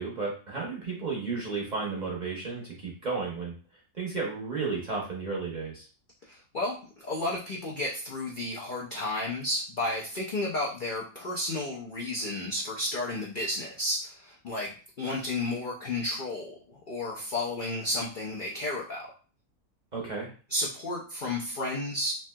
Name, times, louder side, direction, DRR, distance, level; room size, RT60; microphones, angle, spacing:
voice 1, 0.0-3.5 3.9-5.8 19.9-20.3, right 4 dB, 40° right, -3 dB, 0.7 m, -33 dB
voice 2, 6.3-14.7 15.0-19.1 20.5-22.2, left 2 dB, 80° left, -3 dB, 0.4 m, -32 dB
3.2 x 2.7 x 2.2 m, 0.39 s
omnidirectional pair, 1.6 m